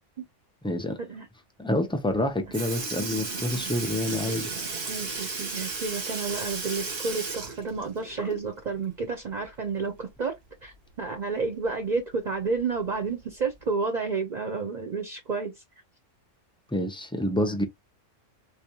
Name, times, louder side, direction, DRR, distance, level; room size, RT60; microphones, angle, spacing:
voice 1, 0.6-1.0 1.6-4.5 16.7-17.6, left 1 dB, 10° left, 0.3 m, -27 dB
Sink (filling or washing) / Liquid, 2.1-2.2 2.5-8.6 9.0-9.1 10.6-10.7 11.7-11.8 12.6-12.8 13.6-13.7, right 3 dB, 90° right, 1.6 m, -34 dB
voice 2, 4.9-10.3 10.6-10.7 11.0-15.5, right 4 dB, 45° right, 0.8 m, -30 dB
4.1 x 2.3 x 2.8 m
omnidirectional pair, 1.3 m